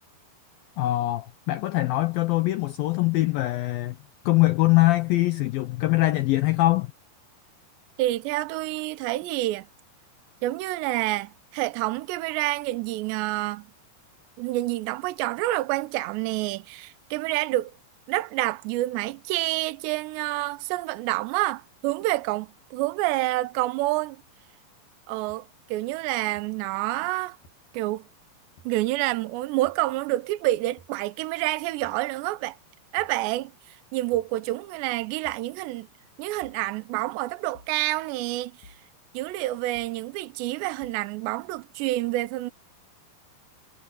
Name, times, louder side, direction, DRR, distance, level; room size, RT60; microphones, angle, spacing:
voice 1, 0.8-4.0 4.3-6.9, left 18 dB, 85° left, 2.1 m, -23 dB
voice 2, 8.0-9.7 10.4-13.7 14.4-17.7 18.1-24.2 25.1-27.4 27.7-28.1 28.7-32.6 32.9-35.9 36.2-38.7 39.1-42.5, right 17 dB, 80° right, 3.0 m, -28 dB
sound 1, 25.3-25.4 26.4-26.5 27.4-27.5 28.6-28.7 29.6-29.8 30.8-31.0 31.8-32.0 33.0-33.2 34.1-34.3 35.2-35.5 36.4-36.6 37.5-37.8 38.6-38.9 39.8-40.0 40.8-41.0, left 2 dB, 55° left, 4.7 m, -53 dB
omnidirectional pair, 5.1 m